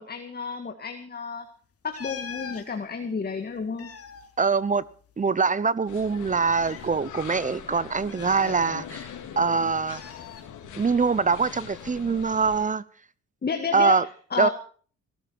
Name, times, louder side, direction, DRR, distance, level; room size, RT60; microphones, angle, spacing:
voice 1, 0.0-1.5 1.8-3.9 13.4-14.5, left 5 dB, 30° left, 1.9 m, -31 dB
sound 1, 1.9-2.7 3.6-5.2 5.5-5.6 6.4-6.9 8.1-9.1 9.9-10.4 11.7-11.9, left 7 dB, 50° left, 2.4 m, -42 dB
voice 2, 4.4-4.8 5.2-9.1 9.4-10.0 10.7-12.8 13.7-14.0 14.4-14.5, right 5 dB, 25° right, 0.8 m, -23 dB
sound 2, 5.9-12.6, left 8 dB, 80° left, 3.4 m, -41 dB
21.5 x 13.0 x 4.7 m
cardioid pair, 90°, 30 cm